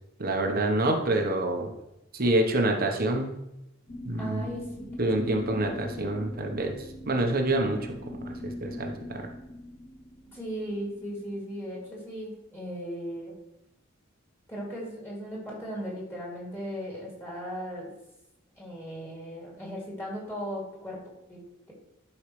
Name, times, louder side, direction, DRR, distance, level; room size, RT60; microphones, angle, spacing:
voice 1, 0.2-1.7 2.1-3.3 4.0-4.5 5.0-6.7 7.1-8.0 8.2-9.3, right 1 dB, 45° right, 3 dB, 1.1 m, -27 dB
sound 1, 3.9-11.8, left 1 dB, 35° left, 0.8 m, -42 dB
voice 2, 4.2-5.2 10.3-13.4 14.5-17.9 18.6-21.0 21.3-21.7, equal, 10° left, -4 dB, 2.9 m, -37 dB
12.0 x 5.6 x 3.3 m, 0.89 s
head